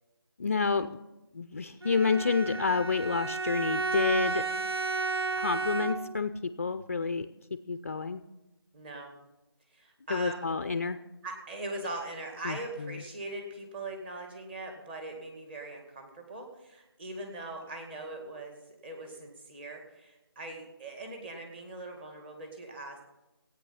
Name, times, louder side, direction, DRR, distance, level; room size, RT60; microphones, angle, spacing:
voice 1, 0.4-1.0 1.3-4.4 5.3-8.2 10.1-11.0 12.4-13.0, left 4 dB, 35° left, 12 dB, 0.4 m, -29 dB
Bowed string instrument, 1.8-6.3, right 4 dB, 75° right, 0.8 m, -32 dB
voice 2, 8.7-9.1 9.7-10.5 11.2-23.0, right 2 dB, 25° right, 3 dB, 2.0 m, -41 dB
16.0 x 9.1 x 5.7 m, 0.99 s
figure-of-eight pair, 165°, 13 cm